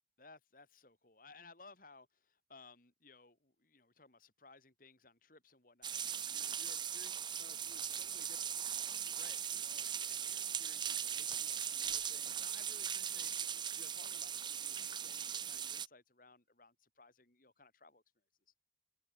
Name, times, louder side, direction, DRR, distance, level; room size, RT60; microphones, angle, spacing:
voice 1, 0.2-18.0 18.5-18.6, left 3 dB, 50° left, 4.2 m, -61 dB
sound 1, 5.8-15.9, right 8 dB, 25° right, 0.8 m, -39 dB
head